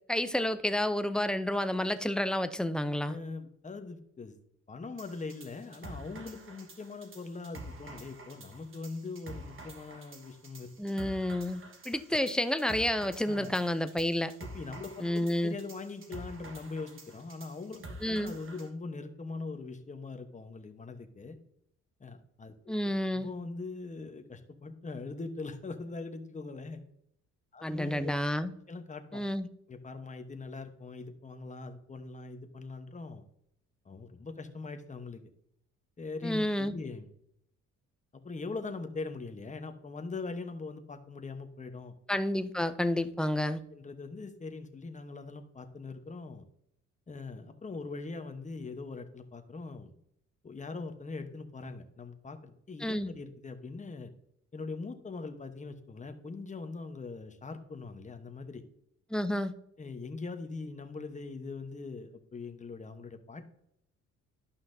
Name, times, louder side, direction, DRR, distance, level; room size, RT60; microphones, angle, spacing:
voice 1, 0.1-3.2 10.8-14.3 15.0-15.5 18.0-18.3 22.7-23.3 27.6-28.5 29.1-29.5 36.2-36.7 42.1-43.6 52.8-53.1 59.1-59.5, left 1 dB, 5° left, 10 dB, 0.5 m, -30 dB
voice 2, 3.1-4.4 4.7-10.7 13.3-13.5 14.4-21.4 22.0-22.7 23.1-26.8 27.5-28.2 28.7-29.2 29.7-33.2 33.8-35.2 36.0-37.1 38.1-41.9 43.7-46.4 47.1-49.9 50.4-54.1 54.5-58.6 59.8-63.4, left 3 dB, 25° left, 7 dB, 1.0 m, -41 dB
sound 1, 5.0-18.7, right 2 dB, 45° right, 1.5 m, -48 dB
11.5 x 5.6 x 2.7 m, 0.72 s
cardioid pair, 90°, 30 cm